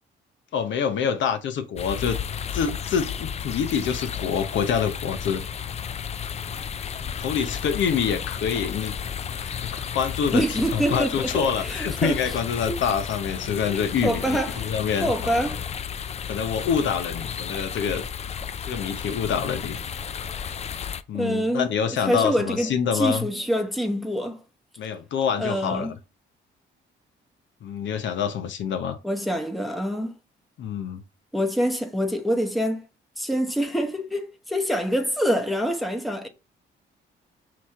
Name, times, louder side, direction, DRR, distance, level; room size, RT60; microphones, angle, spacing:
voice 1, 0.5-2.2 2.5-5.4 7.2-8.9 9.4-15.3 16.3-18.1 18.7-19.8 21.1-23.3 24.8-25.9 27.6-29.0 30.6-31.0, left 7 dB, 70° left, 0.8 m, -26 dB
sound 1, 1.8-21.0, left 7 dB, 35° left, 0.4 m, -33 dB
voice 2, 10.3-12.2 12.7-12.8 13.7-14.7 15.0-15.6 21.1-21.7 22.0-24.4 25.4-25.9 29.0-30.1 31.3-32.8 33.2-36.3, equal, ahead, 0.9 m, -26 dB
6.0 x 2.9 x 2.4 m
cardioid pair, 90°, 20 cm